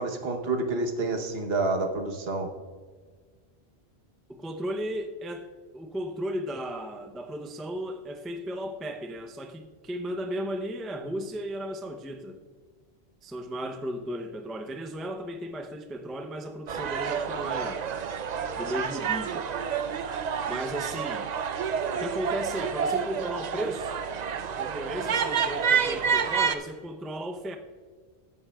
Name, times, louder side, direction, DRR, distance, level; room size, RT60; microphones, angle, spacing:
voice 1, 0.0-2.5, right 3 dB, 70° right, 1.2 m, -28 dB
voice 2, 4.3-12.4 13.2-17.9 18.5-19.5 20.4-21.3 21.9-24.0 24.6-27.6, equal, ahead, 0.3 m, -35 dB
sound 1, 16.7-26.6, right 7 dB, 50° right, 0.5 m, -29 dB
14.5 x 9.4 x 2.3 m
omnidirectional pair, 1.1 m